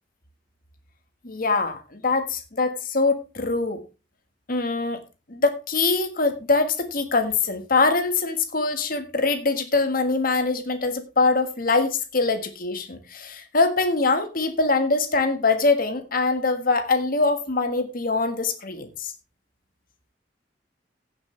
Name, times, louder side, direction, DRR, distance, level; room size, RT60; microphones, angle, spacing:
voice 1, 1.2-3.8 4.5-5.0 5.3-19.1, left 3 dB, 50° left, 8 dB, 1.6 m, -23 dB
16.0 x 7.1 x 3.3 m, 0.29 s
head